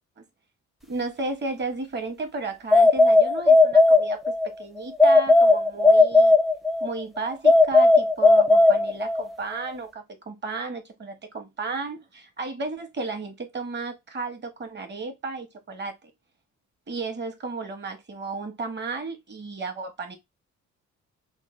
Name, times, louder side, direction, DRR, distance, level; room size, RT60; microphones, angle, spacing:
voice 1, 0.9-4.2 4.6-6.4 6.8-15.9 16.9-20.1, right 3 dB, 35° right, 1.1 m, -33 dB
sound 1, 2.7-4.5 5.0-6.9 7.4-9.3, left 2 dB, ahead, 0.5 m, -16 dB
3.1 x 2.0 x 3.0 m
cardioid pair, 90°, 30 cm